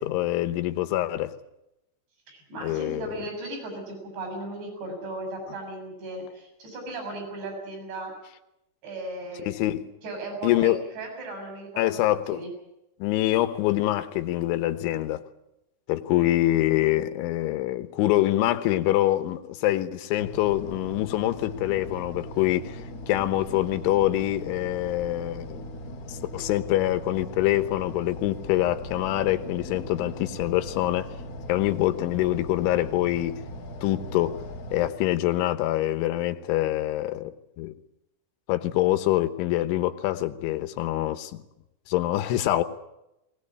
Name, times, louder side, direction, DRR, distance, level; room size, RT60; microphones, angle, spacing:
voice 1, 0.0-1.3 2.6-3.1 9.5-9.9 10.4-10.8 11.8-12.4 13.0-15.2 15.9-22.8 23.1-25.7 26.1-31.1 31.5-33.4 33.8-34.4 34.7-37.7 38.5-41.4 41.9-42.6, left 15 dB, 80° left, 3.5 m, -25 dB
voice 2, 2.3-8.1 8.8-9.5 10.0-11.9 12.3-12.5 16.2-16.3, right 2 dB, 65° right, 8.8 m, -36 dB
sound 1, 20.2-34.9, equal, 45° left, 2.9 m, -39 dB
21.0 x 19.0 x 8.5 m
omnidirectional pair, 5.4 m